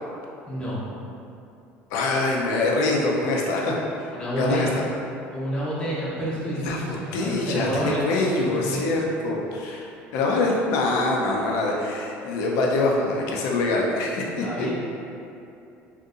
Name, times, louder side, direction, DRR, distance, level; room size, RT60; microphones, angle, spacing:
voice 1, 0.5-0.8 4.1-4.7 5.3-8.9 14.4-14.7, equal, 15° left, -9 dB, 0.9 m, -29 dB
voice 2, 1.9-4.1 4.4-4.8 6.6-14.7, left 2 dB, 75° left, -1 dB, 0.5 m, -24 dB
3.9 x 2.6 x 2.5 m, 2.7 s
supercardioid pair, 105°, 5 cm